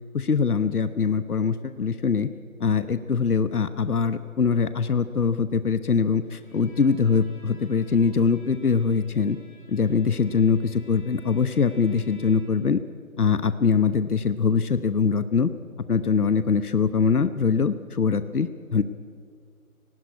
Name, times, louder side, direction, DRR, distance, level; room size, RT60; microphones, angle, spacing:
voice 1, 0.1-2.3 2.6-9.4 9.7-12.8 13.2-15.5 15.9-18.8, left 5 dB, 85° left, 12 dB, 1.1 m, -23 dB
Bowed string instrument, 6.4-12.7, right 1 dB, 35° left, 5.6 m, -53 dB
18.5 x 16.0 x 9.5 m, 2.1 s
figure-of-eight pair, 175°, 43 cm